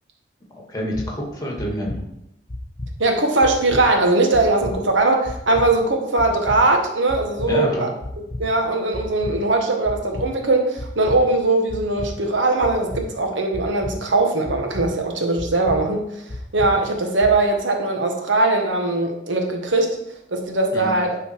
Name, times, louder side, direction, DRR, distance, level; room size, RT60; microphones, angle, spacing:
voice 1, 0.7-2.0 7.5-7.9 20.7-21.1, equal, 20° left, -1 dB, 1.9 m, -27 dB
sound 1, 0.9-1.1 1.6-2.0 2.5-2.9 3.4-3.8 4.3-4.7 5.2-5.7 6.2-6.6 7.1-7.5 8.0-8.4 8.9-9.3 9.8-10.3 10.8-11.2 11.7-12.1 12.6-13.0 13.5-13.9 14.4-14.9 15.4-15.8 16.3-16.7 17.2-17.3, left 2 dB, 40° left, 0.9 m, -31 dB
voice 2, 3.0-7.9 8.4-16.1 16.5-20.0 20.3-21.2, right 2 dB, 80° right, 3 dB, 1.3 m, -20 dB
11.0 x 4.0 x 4.6 m, 0.82 s
head